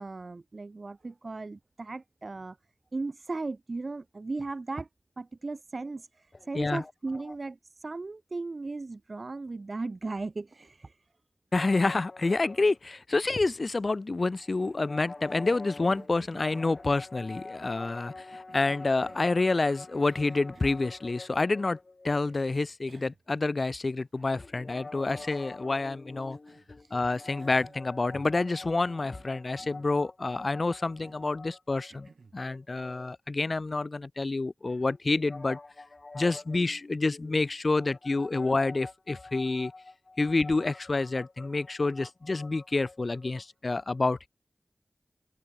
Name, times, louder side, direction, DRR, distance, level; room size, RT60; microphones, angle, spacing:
voice 1, 0.0-2.6 2.9-4.9 5.2-11.0 26.8-26.9 42.0-42.1, right 3 dB, 60° right, 0.6 m, -37 dB
voice 2, 11.5-44.3, left 3 dB, 60° left, 0.4 m, -28 dB
Cough, 15.2-17.4 18.1-19.4 20.1-20.9 22.3-22.4 22.9-23.2 23.6-23.7 25.2-25.7 26.3-26.7 27.1-28.5 28.8-29.9 30.3-30.6 31.0-31.3 31.9-32.4, right 4 dB, 90° right, 7.5 m, -56 dB
open air
wide cardioid pair, 50°, 0 cm